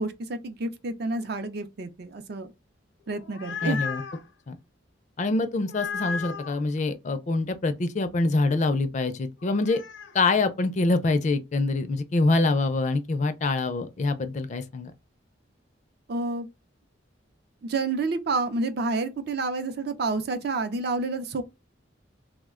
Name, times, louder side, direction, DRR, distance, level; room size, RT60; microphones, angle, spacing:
voice 1, 0.0-2.5 3.1-3.8 16.1-16.5 17.6-21.4, right 3 dB, 55° right, 0.5 m, -29 dB
sound 1, 3.1-4.2 5.6-6.6 9.4-10.1, left 6 dB, 85° left, 0.6 m, -34 dB
voice 2, 3.6-4.0 4.5-4.6 5.2-9.8 10.1-14.9, left 3 dB, 40° left, 0.4 m, -25 dB
3.1 x 2.1 x 3.5 m
head